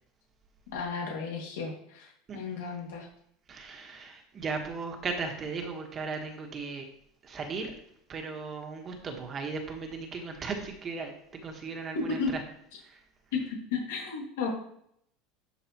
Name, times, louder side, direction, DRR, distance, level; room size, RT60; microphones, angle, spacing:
voice 1, 0.7-3.1 12.1-12.3 13.3-14.5, left 5 dB, 90° left, -1 dB, 2.3 m, -33 dB
voice 2, 3.5-6.9 7.2-7.7 8.1-12.4 12.8-13.0, right 4 dB, 30° right, 4 dB, 1.5 m, -37 dB
11.5 x 4.6 x 3.1 m, 0.70 s
supercardioid pair, 130°, 0 cm